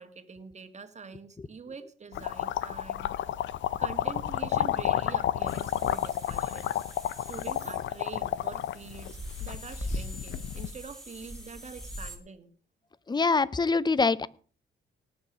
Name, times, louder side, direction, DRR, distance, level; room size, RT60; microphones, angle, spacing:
voice 1, 0.0-3.1 3.8-6.8 7.3-12.5, right 5 dB, 35° right, 9 dB, 2.1 m, -45 dB
sound 1, 2.1-10.7, left 11 dB, 70° left, 0.8 m, -31 dB
sound 2, 5.5-12.2, equal, ahead, 4.2 m, -42 dB
voice 2, 13.1-14.3, left 4 dB, 20° left, 20 dB, 0.8 m, -24 dB
18.5 x 7.3 x 6.3 m, 0.41 s
cardioid pair, 90°, 20 cm